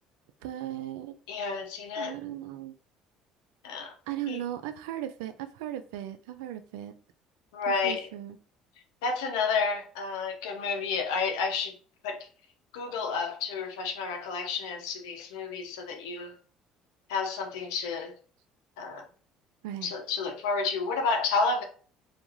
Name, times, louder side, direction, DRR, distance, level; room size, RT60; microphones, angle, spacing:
voice 1, 0.4-1.1 1.9-2.7 4.1-6.9 7.7-8.4 19.6-19.9, right 12 dB, 85° right, 0.3 m, -37 dB
voice 2, 1.3-2.1 3.6-3.9 4.3-4.4 7.5-8.1 9.0-11.8 12.0-12.2 12.7-16.3 17.1-18.1 18.8-19.0 19.8-21.6, left 4 dB, 85° left, 0.6 m, -30 dB
2.4 x 2.3 x 3.0 m
supercardioid pair, 75°, 2 cm